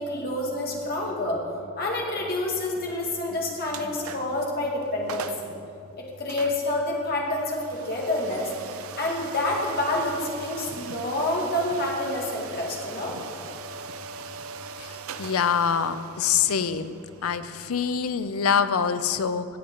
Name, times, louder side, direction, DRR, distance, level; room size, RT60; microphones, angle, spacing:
voice 1, 0.0-1.4 1.8-5.3 6.2-8.5 9.0-13.1, left 1 dB, 45° left, -2 dB, 2.0 m, -28 dB
sound 1, 3.7-4.4 4.8-4.9 5.1-5.5 6.3-19.0, right 5 dB, 85° right, 0.5 m, -41 dB
voice 2, 15.2-16.9 17.2-19.5, left 7 dB, 90° left, 12 dB, 0.5 m, -25 dB
16.0 x 8.5 x 3.9 m, 2.7 s
head